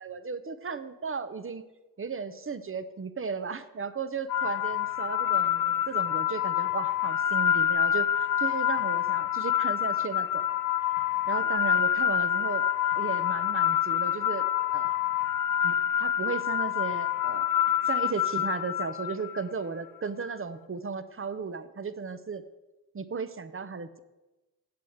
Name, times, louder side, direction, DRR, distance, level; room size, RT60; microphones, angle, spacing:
voice 1, 0.0-1.7 2.0-10.4 11.3-12.6 12.9-14.9 15.6-17.5 17.9-22.4 22.9-24.0, right 5 dB, 35° right, 13 dB, 0.8 m, -35 dB
sound 1, 4.3-19.4, left 10 dB, 55° left, 0.6 m, -27 dB
7.7 x 6.9 x 8.0 m, 1.1 s
cardioid pair, 50°, 39 cm